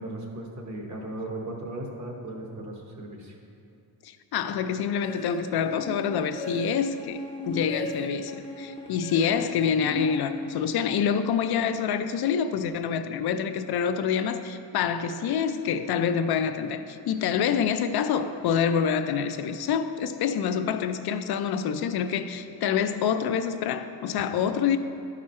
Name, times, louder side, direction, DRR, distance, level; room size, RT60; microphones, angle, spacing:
voice 1, 0.0-3.4, right 1 dB, 45° right, 1.1 m, -37 dB
voice 2, 4.0-24.8, left 7 dB, 75° left, 0.5 m, -27 dB
sound 1, 5.0-10.9, left 1 dB, 15° left, 0.5 m, -37 dB
11.0 x 5.0 x 4.2 m
wide cardioid pair, 170°, 39 cm